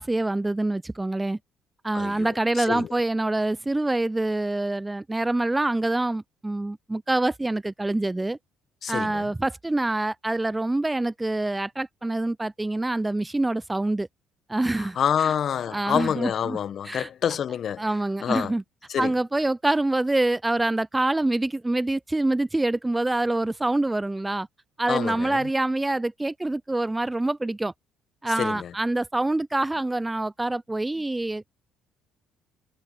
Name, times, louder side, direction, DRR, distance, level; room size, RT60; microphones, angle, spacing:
voice 1, 0.0-1.4 1.8-8.4 8.9-14.1 14.5-15.0 15.2-15.3 15.7-16.6 16.8-17.1 17.8-18.6 19.0-24.5 24.8-27.7 28.2-31.5, right 2 dB, 15° right, 0.5 m, -26 dB
voice 2, 1.9-2.3 2.6-2.9 8.8-9.3 14.8-17.9 18.2-18.5 18.9-19.1 24.9-25.5 28.3-28.7, left 8 dB, 55° left, 1.6 m, -27 dB
hypercardioid pair, 55°, 0 cm